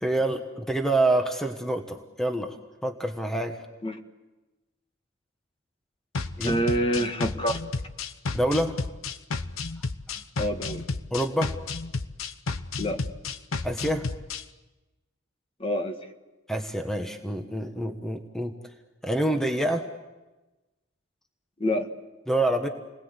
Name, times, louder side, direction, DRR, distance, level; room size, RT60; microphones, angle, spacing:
voice 1, 0.0-3.6 6.4-6.6 8.3-8.8 10.1-10.2 11.1-11.6 13.6-14.1 16.5-18.6 19.0-19.9 22.3-22.7, right 1 dB, ahead, 5 dB, 1.3 m, -27 dB
sound 1, 6.1-14.4, left 3 dB, 85° left, 1.0 m, -32 dB
voice 2, 6.4-7.6 10.4-10.8 12.8-13.1 15.6-16.0 21.6-21.9, equal, 30° left, 6 dB, 1.6 m, -27 dB
29.0 x 20.5 x 8.2 m, 1.1 s
head